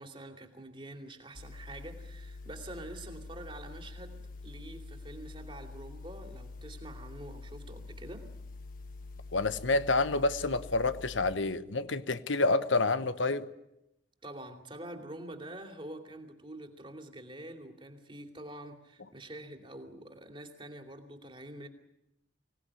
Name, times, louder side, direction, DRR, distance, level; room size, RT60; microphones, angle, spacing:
voice 1, 0.0-8.3 14.2-21.7, right 1 dB, 25° right, 2.7 m, -46 dB
sound 1, 1.4-11.4, left 3 dB, 45° left, 1.4 m, -46 dB
voice 2, 9.3-13.5, left 3 dB, 80° left, 1.1 m, -28 dB
25.0 x 18.0 x 9.9 m
head